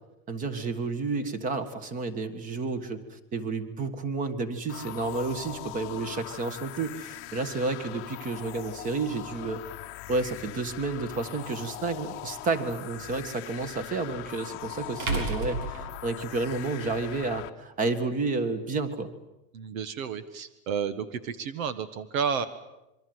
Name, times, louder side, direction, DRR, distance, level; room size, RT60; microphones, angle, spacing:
voice 1, 0.3-9.6 10.1-19.1, right 3 dB, 20° right, 13 dB, 1.5 m, -31 dB
sound 1, 4.7-17.5, left 16 dB, 30° left, 1.1 m, -41 dB
sound 2, 11.2-11.3 13.8-13.9 15.0-16.6, right 3 dB, 85° right, 6.3 m, -32 dB
voice 2, 19.5-22.5, right 6 dB, 70° right, 14 dB, 1.6 m, -31 dB
27.0 x 23.5 x 7.9 m, 0.94 s
supercardioid pair, 175°, 43 cm